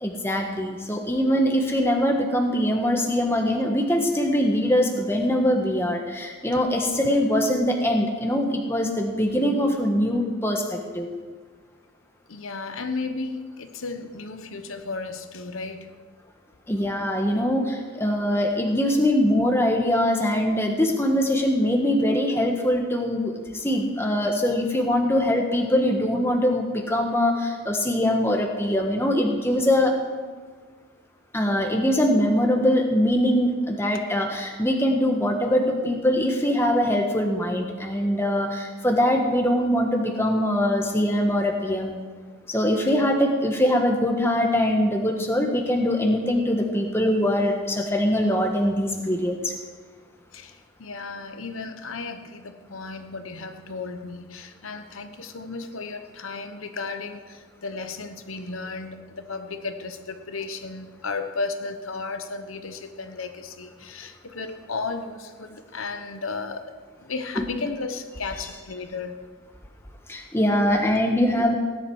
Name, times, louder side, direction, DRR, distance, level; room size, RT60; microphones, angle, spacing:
voice 1, 0.0-11.1 16.7-30.0 31.3-42.0 42.5-49.5 67.3-67.5 68.3-68.5 70.1-71.6, equal, 10° left, 2 dB, 1.4 m, -22 dB
voice 2, 12.3-16.0 50.3-66.7 67.0-69.1, left 4 dB, 85° left, 7 dB, 1.0 m, -34 dB
17.0 x 11.0 x 4.8 m, 1.5 s
head